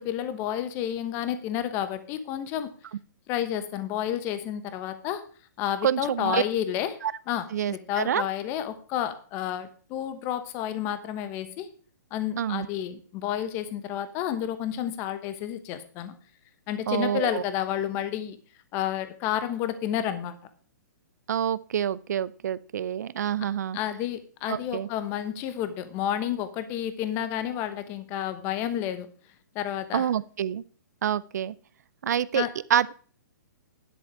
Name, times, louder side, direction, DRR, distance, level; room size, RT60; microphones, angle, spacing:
voice 1, 0.0-2.7 3.3-5.2 5.6-7.0 7.3-11.7 12.1-16.1 16.7-18.4 18.7-20.3 23.7-29.1 29.5-30.1 32.3-32.5, left 10 dB, 25° left, 11 dB, 1.0 m, -30 dB
voice 2, 5.8-6.4 7.0-7.1 7.5-8.2 12.4-12.7 16.9-17.4 21.3-23.8 24.5-24.9 29.9-30.6 31.0-31.5 32.0-33.0, right 9 dB, 60° right, 19 dB, 0.6 m, -27 dB
10.0 x 8.1 x 4.7 m, 0.41 s
hypercardioid pair, 160°, 10 cm